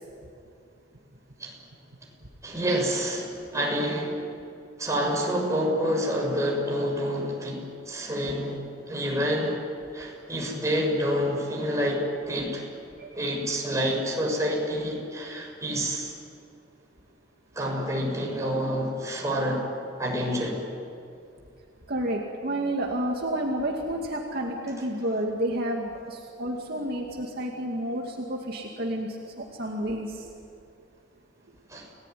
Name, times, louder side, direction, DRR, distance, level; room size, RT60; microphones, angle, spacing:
voice 1, 2.4-4.2 4.8-8.6 8.9-9.6 9.9-12.6 13.1-16.1 17.5-19.7 20.0-20.6 31.7-31.9, equal, 15° right, -1 dB, 6.7 m, -28 dB
voice 2, 21.9-30.2, right 1 dB, 55° right, 0 dB, 2.5 m, -30 dB
29.5 x 19.0 x 9.4 m, 2.4 s
head